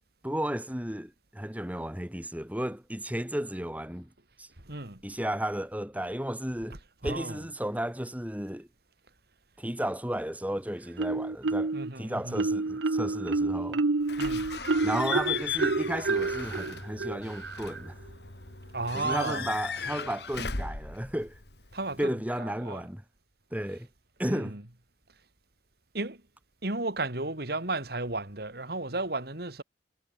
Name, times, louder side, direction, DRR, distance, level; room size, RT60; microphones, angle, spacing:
voice 1, 0.2-4.1 4.4-4.5 5.0-6.8 7.0-8.7 9.6-13.8 14.8-18.0 18.9-21.4 22.0-23.0 23.5-23.9 24.2-24.6, right 1 dB, 10° right, 3.0 m, -33 dB
voice 2, 4.6-5.0 7.0-7.4 11.7-12.4 14.2-14.5 18.7-19.5 21.7-22.1 22.6-22.8 24.2-24.6 25.9-26.2 26.6-29.6, right 2 dB, 60° right, 3.2 m, -33 dB
Marimba xylophone, 11.0-11.9 12.4-17.9, right 3 dB, 90° right, 0.9 m, -29 dB
Slam / Squeak / Alarm, 14.1-22.0, left 6 dB, 65° left, 3.1 m, -37 dB
head